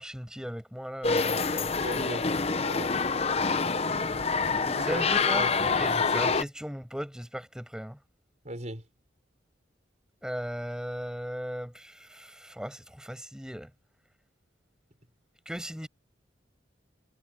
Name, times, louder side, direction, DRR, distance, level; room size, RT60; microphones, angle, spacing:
voice 1, 0.0-1.4 4.8-8.0 10.2-13.7 15.4-15.9, equal, 5° right, 6.8 m, -37 dB
sound 1, 1.0-6.4, left 4 dB, 35° left, 0.8 m, -26 dB
voice 2, 1.3-2.3 2.7-3.0 4.6-5.5 8.4-8.8, right 1 dB, 40° right, 5.9 m, -38 dB
head